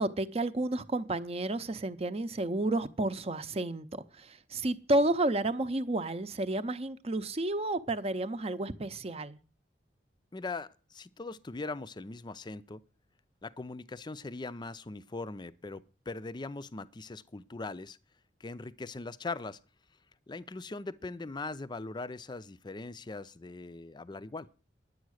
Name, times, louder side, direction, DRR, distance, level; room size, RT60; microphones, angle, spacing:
voice 1, 0.0-9.4, right 2 dB, 35° right, 0.7 m, -31 dB
voice 2, 10.3-12.8 13.4-18.0 18.4-19.6 20.3-24.5, left 3 dB, 25° left, 0.5 m, -40 dB
10.5 x 8.3 x 6.4 m
head